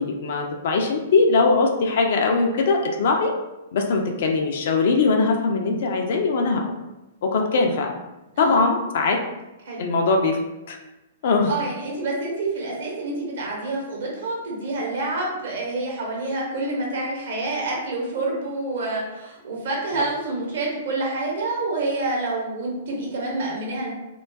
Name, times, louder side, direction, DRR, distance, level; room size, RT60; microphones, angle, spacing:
voice 1, 0.0-3.3 3.7-6.7 7.2-7.9 8.4-9.2 9.8-10.4 10.7-10.8 11.2-11.5, left 4 dB, 55° left, 2 dB, 0.3 m, -21 dB
voice 2, 11.5-23.9, right 2 dB, 60° right, -3 dB, 0.8 m, -28 dB
2.4 x 2.2 x 2.2 m, 0.98 s
figure-of-eight pair, 110°, 0 cm